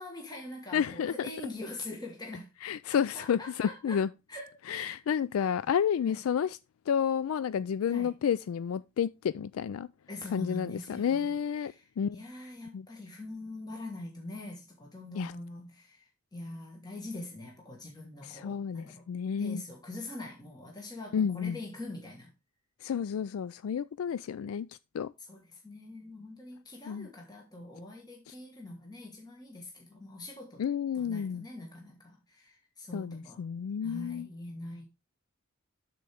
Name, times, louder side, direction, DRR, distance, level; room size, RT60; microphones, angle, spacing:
voice 1, 0.0-2.5 3.1-4.0 4.3-5.0 6.0-6.2 7.9-8.1 10.1-19.1 19.4-22.3 25.3-30.6 30.9-33.4 33.8-34.9, left 2 dB, 20° left, 1.5 m, -43 dB
voice 2, 0.7-1.1 2.6-4.1 4.7-6.6 6.9-9.9 10.3-12.2 12.7-12.9 15.2-15.3 18.2-19.6 21.1-21.6 22.8-24.7 24.9-25.1 26.9-27.1 28.3-28.4 30.6-31.5 32.9-34.3, left 7 dB, 80° left, 0.3 m, -31 dB
12.5 x 4.5 x 3.5 m
head